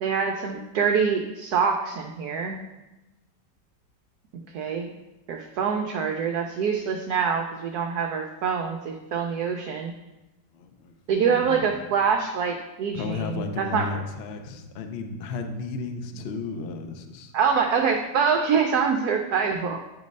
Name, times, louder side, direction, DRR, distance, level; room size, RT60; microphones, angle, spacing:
voice 1, 0.0-2.6 4.5-4.9 5.3-9.9 11.1-14.0 17.3-19.8, right 6 dB, 70° right, 3 dB, 1.0 m, -25 dB
voice 2, 10.5-11.0 11.2-11.7 12.9-17.3, left 4 dB, 70° left, 6 dB, 0.6 m, -34 dB
9.1 x 3.1 x 5.2 m, 1.0 s
omnidirectional pair, 1.9 m